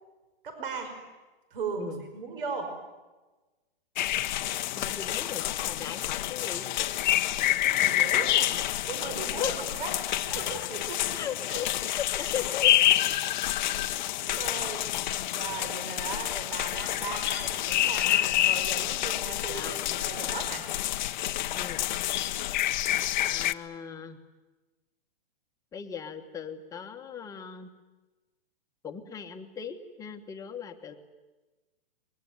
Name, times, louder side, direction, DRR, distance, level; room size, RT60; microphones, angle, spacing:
voice 1, 0.4-1.0 1.5-2.7 7.2-8.6 8.9-9.9 10.2-11.6 14.2-20.7, right 4 dB, 60° right, 6 dB, 5.3 m, -38 dB
sound 1, 4.0-23.5, left 14 dB, 50° left, 0.9 m, -28 dB
voice 2, 4.5-6.7 9.4-9.5 10.3-10.7 11.1-12.7 13.3-13.6 19.5-20.0 21.5-21.9 23.3-24.2 25.7-27.7 28.8-30.9, left 8 dB, 10° left, 5 dB, 1.4 m, -38 dB
23.5 x 21.5 x 9.5 m, 1.2 s
hypercardioid pair, 150°, 30 cm